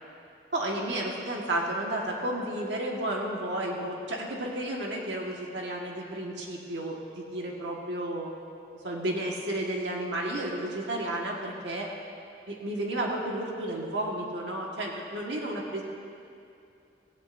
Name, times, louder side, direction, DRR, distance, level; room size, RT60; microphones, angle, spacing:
voice 1, 0.5-8.3 8.8-11.9 12.5-15.8, right 1 dB, 85° right, -2 dB, 1.6 m, -32 dB
18.0 x 16.5 x 2.6 m, 2.6 s
head